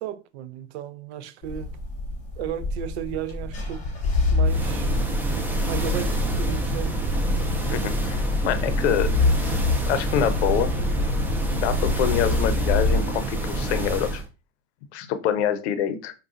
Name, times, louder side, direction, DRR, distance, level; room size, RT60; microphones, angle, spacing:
voice 1, 0.0-1.8 2.4-3.8 4.3-5.0 5.6-6.9 7.4-7.6, right 10 dB, 65° right, 0.5 m, -34 dB
sound 1, 1.4-13.0, left 3 dB, 20° left, 0.9 m, -26 dB
sound 2, 4.5-14.3, right 2 dB, 5° right, 0.4 m, -27 dB
voice 2, 7.7-9.2 9.4-9.5 9.9-10.7 11.5-14.2 14.9-16.1, left 10 dB, 70° left, 0.7 m, -26 dB
4.8 x 2.3 x 2.5 m
hypercardioid pair, 115°, 35 cm